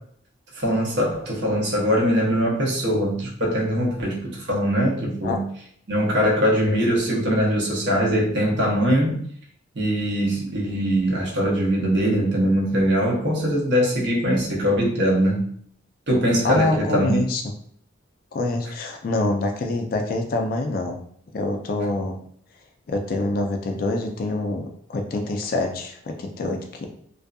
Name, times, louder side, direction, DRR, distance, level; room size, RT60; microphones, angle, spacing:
voice 1, 0.5-5.5 5.9-9.2 9.7-15.4 16.1-17.2, equal, 60° right, -3 dB, 0.8 m, -22 dB
voice 2, 16.4-17.4 18.3-21.0 21.3-22.2 22.9-26.9, left 2 dB, 45° left, 4 dB, 0.3 m, -26 dB
2.6 x 2.4 x 2.3 m, 0.62 s
head